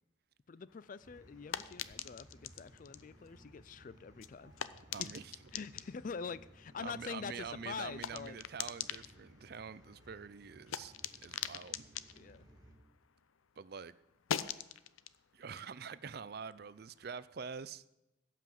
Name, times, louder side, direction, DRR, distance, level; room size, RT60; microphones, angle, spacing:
voice 1, 0.5-4.5 5.0-5.1 5.5-8.4 12.1-12.5, left 5 dB, 40° left, 0.4 m, -45 dB
sound 1, 0.7-13.5 13.7-17.0, left 9 dB, 85° left, 0.6 m, -45 dB
sound 2, 1.0-12.7, right 1 dB, 20° right, 2.1 m, -61 dB
voice 2, 4.9-5.3 6.8-10.9 11.2-11.8 13.6-13.9 15.3-17.8, right 6 dB, 50° right, 0.4 m, -46 dB
16.5 x 5.9 x 7.7 m
head